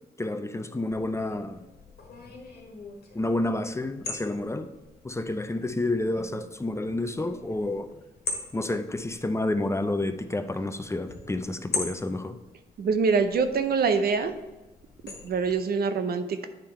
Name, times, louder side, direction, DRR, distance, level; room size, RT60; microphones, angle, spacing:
voice 1, 0.2-1.6 3.1-4.7 5.0-7.9 8.5-12.4, left 2 dB, 15° left, 8 dB, 0.5 m, -29 dB
sound 1, 0.9-15.5, left 3 dB, 70° left, 1.5 m, -42 dB
voice 2, 12.8-14.3 15.0-16.5, right 5 dB, 65° right, 9 dB, 0.6 m, -25 dB
9.0 x 3.6 x 4.4 m, 1.1 s
cardioid pair, 65°, 17 cm